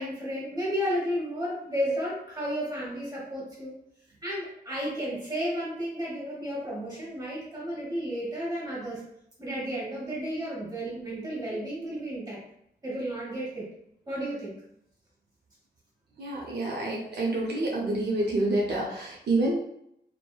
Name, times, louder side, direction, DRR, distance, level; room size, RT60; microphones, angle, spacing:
voice 1, 0.0-3.7 4.2-9.0 9.4-12.4 12.8-13.7 14.1-14.6, equal, 20° right, -6 dB, 1.2 m, -32 dB
voice 2, 16.2-19.6, right 2 dB, 75° right, -3 dB, 0.6 m, -28 dB
2.9 x 2.1 x 2.3 m, 0.73 s
wide cardioid pair, 115°, 17 cm